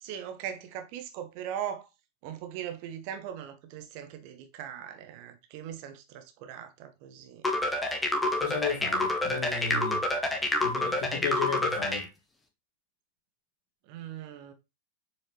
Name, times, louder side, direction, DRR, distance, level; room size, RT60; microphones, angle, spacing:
voice 1, 0.0-1.9 2.2-7.4 13.9-14.5, right 9 dB, 45° right, 1.2 m, -40 dB
sound 1, 7.4-12.0, left 1 dB, 10° left, 1.3 m, -28 dB
voice 2, 8.4-10.0 10.6-12.1, left 5 dB, 45° left, 1.9 m, -34 dB
7.4 x 4.8 x 3.0 m
figure-of-eight pair, 90°, 0 cm